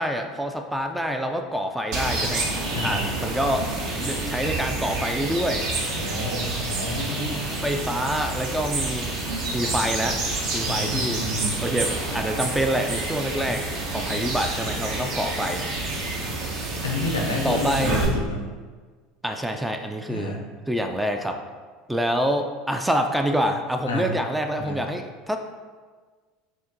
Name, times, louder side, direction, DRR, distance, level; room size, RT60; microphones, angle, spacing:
voice 1, 0.0-2.4 2.8-3.7 4.0-5.6 7.1-9.1 9.5-10.2 10.5-11.2 11.6-15.6 17.4-18.0 19.2-20.4 20.7-21.4 21.9-25.4, equal, 5° right, 5 dB, 0.3 m, -26 dB
sound 1, 1.9-18.1, right 2 dB, 50° right, 0.7 m, -28 dB
voice 2, 2.7-3.1 5.9-7.5 10.7-11.6 16.8-18.4 20.1-20.5 23.9-24.2 24.6-24.8, left 2 dB, 80° left, 1 dB, 0.5 m, -29 dB
6.0 x 2.1 x 2.6 m, 1.5 s
figure-of-eight pair, 70°, 0 cm